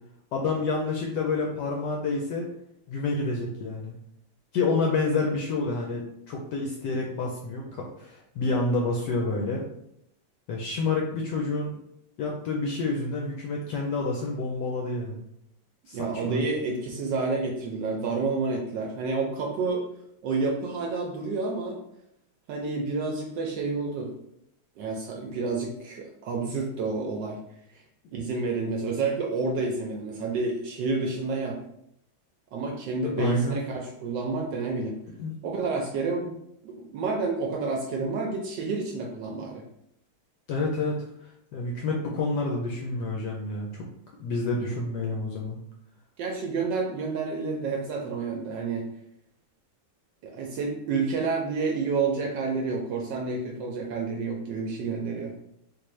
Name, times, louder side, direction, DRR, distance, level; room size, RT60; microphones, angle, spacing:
voice 1, 0.3-2.5 2.9-3.9 4.5-9.6 10.5-11.7 12.2-15.2 15.9-16.4 33.0-33.6 35.2-35.3 40.5-41.0 41.5-43.9 44.2-45.6 46.6-46.7, left 3 dB, 75° left, -1 dB, 1.0 m, -28 dB
voice 2, 15.9-19.9 20.2-21.8 22.5-24.1 24.8-27.4 27.7-27.8 28.1-31.6 32.5-35.0 35.4-36.3 36.6-39.6 46.2-48.9 50.2-55.3, right 4 dB, 75° right, 1 dB, 1.1 m, -29 dB
3.8 x 2.5 x 3.1 m, 0.75 s
omnidirectional pair, 2.3 m